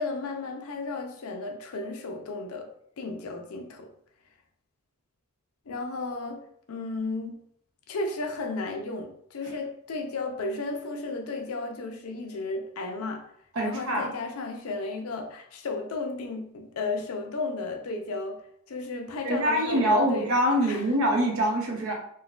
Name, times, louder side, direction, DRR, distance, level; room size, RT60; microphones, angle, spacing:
voice 1, 0.0-2.7 3.0-3.9 5.7-7.3 7.9-13.3 13.6-18.4 18.7-20.3 20.6-20.8, left 3 dB, 85° left, 5 dB, 0.5 m, -33 dB
voice 2, 13.5-14.1 19.2-21.9, right 1 dB, 70° right, 0 dB, 0.8 m, -24 dB
3.8 x 2.2 x 2.3 m, 0.67 s
head